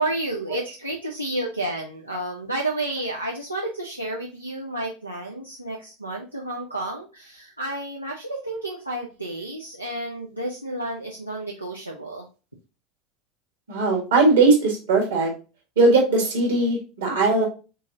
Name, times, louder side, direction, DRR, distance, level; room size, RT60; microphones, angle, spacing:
voice 1, 0.0-12.3, right 1 dB, 90° right, -3 dB, 0.5 m, -31 dB
voice 2, 13.7-15.3 15.7-17.4, right 3 dB, 65° right, 0 dB, 1.6 m, -19 dB
3.8 x 3.8 x 2.6 m, 0.32 s
figure-of-eight pair, 75°, 0 cm